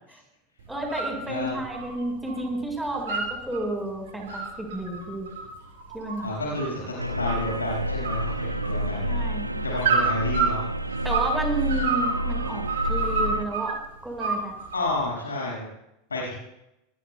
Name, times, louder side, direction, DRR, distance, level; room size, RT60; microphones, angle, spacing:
voice 1, 0.7-5.3 5.9-6.6 9.0-9.6 11.0-13.8 14.0-14.5, right 1 dB, 5° right, 1 dB, 4.7 m, -31 dB
sound 1, 0.7-1.1 1.5-2.4 2.7-3.6 4.1-6.8 7.2-7.7 8.0-9.0 9.8-11.4 11.7-13.7 14.2-14.9, right 5 dB, 65° right, 5.3 m, -28 dB
voice 2, 6.2-9.2 9.6-10.6 14.7-15.7 16.1-16.3, left 2 dB, 80° left, -4 dB, 5.9 m, -30 dB
sound 2, 7.0-13.4, right 1 dB, 90° right, 0.7 m, -29 dB
24.5 x 20.5 x 2.3 m, 0.86 s
figure-of-eight pair, 85°, 0 cm